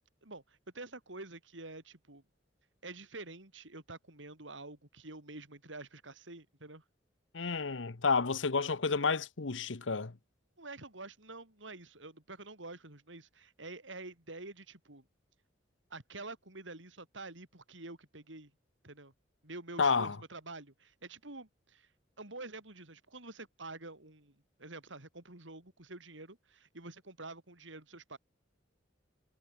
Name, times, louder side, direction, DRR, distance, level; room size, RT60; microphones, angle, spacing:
voice 1, 0.2-2.2 2.8-6.8 10.6-15.0 15.9-18.5 18.8-19.1 19.4-21.9 22.2-24.3 24.6-28.2, right 2 dB, 80° right, 4.6 m, -48 dB
voice 2, 7.3-10.1 19.8-20.2, left 4 dB, 85° left, 1.0 m, -30 dB
head